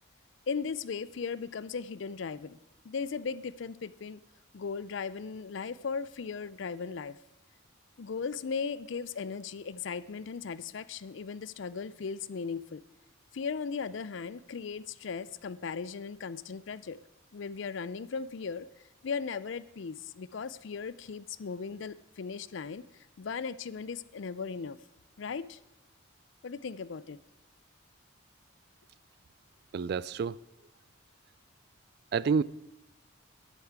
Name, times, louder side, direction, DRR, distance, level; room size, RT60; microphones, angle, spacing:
voice 1, 0.5-2.6 2.8-4.2 4.5-7.2 8.0-12.8 13.3-17.0 17.3-18.7 19.0-22.8 23.2-24.8 25.2-25.6 26.4-27.2, left 5 dB, 65° left, 0.5 m, -37 dB
voice 2, 29.7-30.4 32.1-32.4, right 5 dB, 50° right, 0.3 m, -28 dB
11.0 x 11.0 x 4.6 m
head